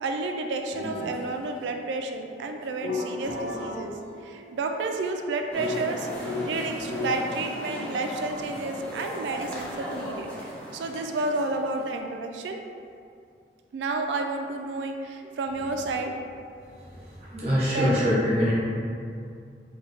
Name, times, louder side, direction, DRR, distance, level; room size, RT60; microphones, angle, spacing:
voice 1, 0.0-3.9 4.2-12.6 13.7-16.1 17.7-17.9, right 3 dB, 85° right, 4 dB, 0.3 m, -31 dB
sound 1, 0.7-1.2 2.6-7.2, left 3 dB, 85° left, 1.1 m, -35 dB
sound 2, 5.5-12.0, equal, 5° left, 0.4 m, -37 dB
voice 2, 17.3-18.5, equal, 35° right, -8 dB, 0.9 m, -23 dB
3.1 x 2.3 x 3.3 m, 2.4 s
head